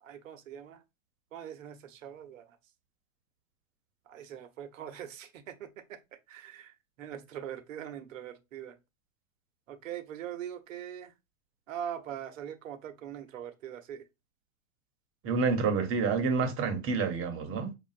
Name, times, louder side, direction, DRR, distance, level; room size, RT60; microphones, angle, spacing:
voice 1, 0.0-0.8 1.3-2.4 4.1-6.0 6.3-8.8 9.7-11.1 11.7-14.0, right 9 dB, 75° right, 0.9 m, -42 dB
voice 2, 15.2-17.7, right 4 dB, 35° right, 1.1 m, -28 dB
5.3 x 2.4 x 2.5 m
hypercardioid pair, 110°, 39 cm